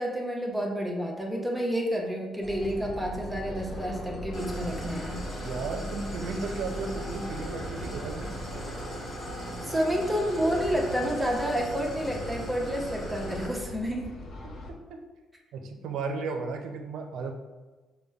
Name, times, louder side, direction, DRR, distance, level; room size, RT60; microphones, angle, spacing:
voice 1, 0.0-5.2 9.6-14.1, equal, 5° right, 0 dB, 0.8 m, -29 dB
sound 1, 2.4-14.7, left 1 dB, 65° left, 0.8 m, -40 dB
Idling, 4.3-13.5, right 1 dB, 35° left, 1.1 m, -39 dB
voice 2, 5.4-8.3 14.9-15.0 15.5-17.3, right 4 dB, 80° right, 4 dB, 0.5 m, -34 dB
5.2 x 2.1 x 3.4 m, 1.2 s
cardioid pair, 90°, 0 cm